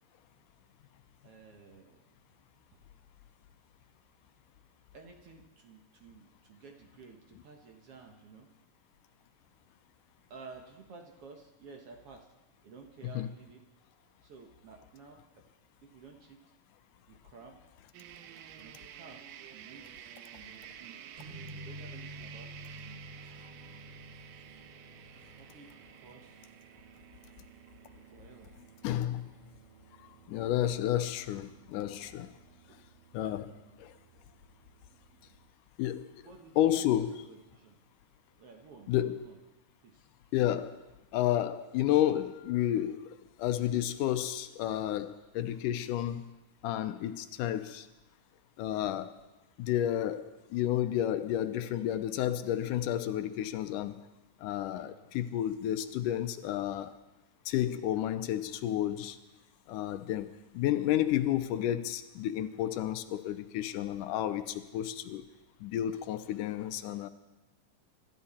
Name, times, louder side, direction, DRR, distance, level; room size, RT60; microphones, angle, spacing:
voice 1, 1.2-2.1 2.7-2.8 4.9-8.5 10.3-12.3 12.6-13.6 14.2-15.5 15.8-16.4 17.1-17.6 18.6-19.3 19.5-19.8 20.3-21.0 21.5-23.1 23.3-23.4 25.1-26.4 28.1-28.6 32.7-32.8 33.3-33.8 36.2-36.9 37.2-37.8 38.4-39.4 39.8-40.1 54.7-55.0, right 4 dB, 55° right, 1.9 m, -53 dB
sound 1, 17.9-35.5, right 10 dB, 90° right, 2.4 m, -53 dB
sound 2, 21.2-26.7, equal, 20° right, 2.4 m, -49 dB
voice 2, 28.8-29.3 30.3-32.3 33.1-33.5 33.8-33.9 35.8-36.1 36.6-37.2 38.9-39.2 40.3-40.8 41.1-43.1 43.4-46.3 46.6-47.9 48.6-49.2 49.6-54.0 54.4-56.9 57.5-59.2 59.7-65.2 65.6-67.1, left 12 dB, 85° left, 2.3 m, -31 dB
25.0 x 12.5 x 4.3 m
omnidirectional pair, 3.7 m